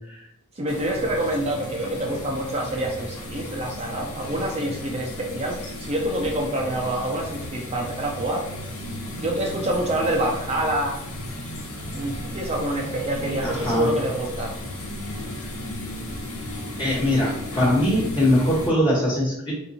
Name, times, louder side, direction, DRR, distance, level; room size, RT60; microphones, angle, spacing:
voice 1, 0.6-8.5 9.2-11.0 11.9-14.6, right 1 dB, 30° right, 0 dB, 0.5 m, -26 dB
sound 1, 0.7-18.7, left 1 dB, 75° left, 1.0 m, -35 dB
voice 2, 13.4-13.9 16.8-19.5, left 1 dB, 20° left, -8 dB, 1.0 m, -21 dB
4.3 x 3.5 x 2.7 m, 0.80 s
head